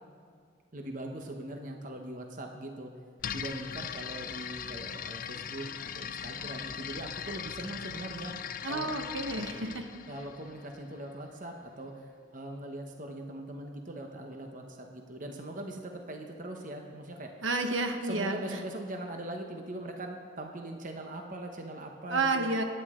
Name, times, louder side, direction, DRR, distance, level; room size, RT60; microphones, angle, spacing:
voice 1, 0.7-2.9 3.3-8.3 8.7-9.0 10.1-17.3 18.0-22.5, right 1 dB, 40° right, 3 dB, 1.0 m, -41 dB
sound 1, 3.2-11.0, left 8 dB, 45° left, 0.5 m, -40 dB
voice 2, 8.6-9.9 17.4-18.6 22.1-22.6, right 2 dB, 75° right, 5 dB, 1.2 m, -30 dB
22.5 x 10.0 x 3.7 m, 2.2 s
head